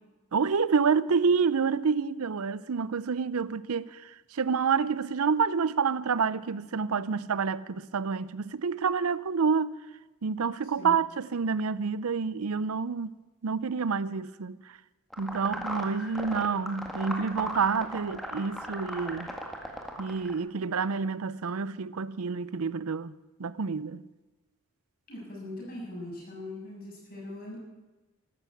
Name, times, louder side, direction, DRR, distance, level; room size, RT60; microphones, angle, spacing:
voice 1, 0.3-9.7 10.2-13.2 13.4-14.6 15.2-19.3 20.0-23.1 23.4-24.0, right 5 dB, 80° right, 0.6 m, -28 dB
sound 1, 15.1-20.3, equal, ahead, 1.7 m, -37 dB
voice 2, 25.1-27.6, left 1 dB, 40° left, 7.1 m, -40 dB
13.5 x 12.5 x 8.5 m
head